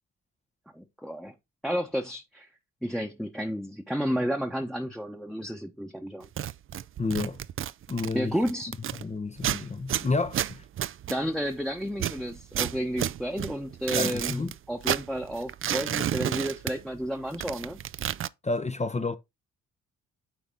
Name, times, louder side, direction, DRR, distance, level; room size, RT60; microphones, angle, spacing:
voice 1, 0.7-1.3 1.6-2.5 2.8-6.3 8.1-8.7 11.1-17.8, equal, ahead, 1.0 m, -31 dB
sound 1, 6.2-9.0 9.4-11.6 11.9-14.5 14.8-17.1 17.3-18.3, right 11 dB, 35° right, 0.4 m, -31 dB
voice 2, 7.0-7.4 7.9-8.4 9.0-10.6 13.9-14.5 18.4-19.2, left 3 dB, 20° left, 0.7 m, -30 dB
9.0 x 4.1 x 3.8 m
hypercardioid pair, 50°, 36 cm